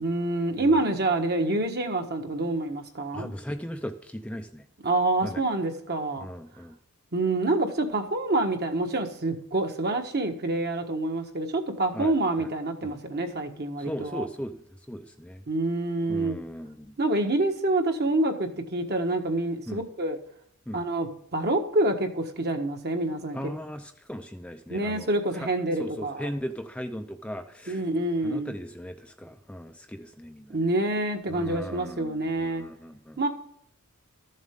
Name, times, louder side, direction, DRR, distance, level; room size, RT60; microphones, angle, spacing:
voice 1, 0.0-3.3 4.8-6.3 7.1-14.3 15.5-16.4 17.0-20.2 20.7-23.5 24.7-26.3 27.7-28.5 30.5-32.6 33.2-33.3, right 2 dB, 45° right, 4 dB, 1.4 m, -27 dB
voice 2, 0.6-0.9 3.1-4.6 5.2-5.4 6.2-6.8 11.9-12.1 12.4-12.5 12.8-13.0 13.8-15.4 16.1-17.0 19.7-19.8 20.7-20.8 23.3-25.5 25.8-27.9 28.2-30.7 31.3-33.2, equal, 5° left, 5 dB, 0.5 m, -38 dB
13.5 x 7.3 x 3.7 m, 0.70 s
head